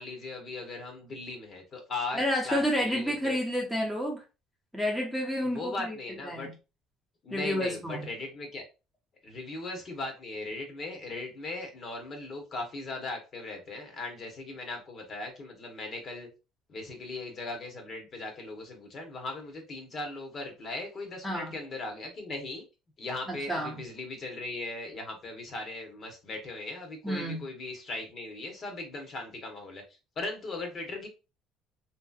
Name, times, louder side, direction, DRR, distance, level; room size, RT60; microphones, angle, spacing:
voice 1, 0.0-3.4 5.4-6.5 7.2-8.6 9.2-16.3 16.7-22.6 23.0-29.8 30.2-31.1, left 2 dB, 35° left, 3 dB, 0.9 m, -38 dB
voice 2, 2.1-4.2 4.7-6.0 6.2-6.5 7.3-8.1 21.2-21.5 23.3-23.8 27.0-27.4, equal, ahead, -1 dB, 0.7 m, -30 dB
2.9 x 2.8 x 2.3 m, 0.30 s
cardioid pair, 135°, 0 cm